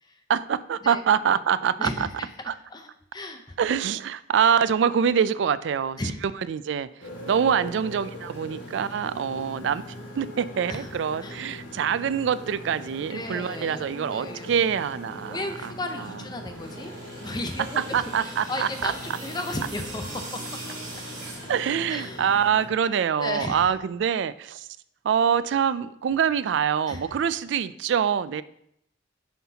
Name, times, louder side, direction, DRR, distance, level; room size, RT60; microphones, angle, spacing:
voice 1, 0.3-2.1 2.5-2.6 3.6-6.0 6.5-6.9 7.3-9.8 10.1-15.7 17.8-18.9 21.5-24.7 25.0-28.4, right 7 dB, 70° right, 16 dB, 0.3 m, -25 dB
voice 2, 1.8-2.3 2.7-3.6 6.0-6.2 10.7-10.9 11.2-11.4 13.1-13.9 14.1-14.5 15.2-16.9 17.2-20.4 21.9-22.4 23.2-23.6 26.9-27.0, left 2 dB, 20° left, 6 dB, 0.6 m, -34 dB
Motorcycle, 7.0-22.7, equal, 75° left, 1.8 m, -41 dB
sound 1, 16.4-22.3, right 2 dB, 45° right, 2.3 m, -42 dB
9.3 x 5.8 x 2.8 m, 0.74 s
head